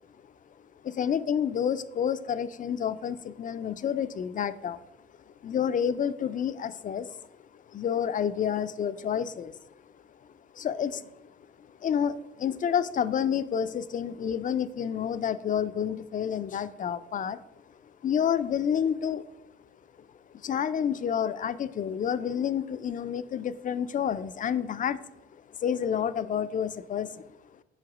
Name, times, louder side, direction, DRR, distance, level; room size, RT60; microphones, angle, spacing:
voice 1, 0.8-4.8 5.3-7.2 7.5-9.6 10.5-11.3 11.6-17.4 18.0-19.3 20.4-25.0 25.5-27.2, left 8 dB, 40° left, 13 dB, 0.4 m, -29 dB
5.4 x 4.9 x 6.0 m, 0.94 s
cardioid pair, 90°, 20 cm